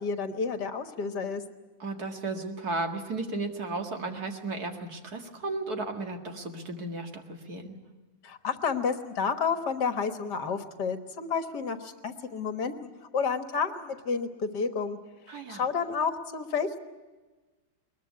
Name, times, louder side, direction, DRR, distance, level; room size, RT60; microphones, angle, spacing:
voice 1, 0.0-1.4 8.2-15.0 15.5-16.7, left 5 dB, 65° left, 8 dB, 1.9 m, -30 dB
voice 2, 1.8-7.8 15.3-15.7, right 2 dB, 55° right, 4 dB, 2.5 m, -34 dB
21.5 x 21.0 x 9.5 m, 1.3 s
omnidirectional pair, 2.0 m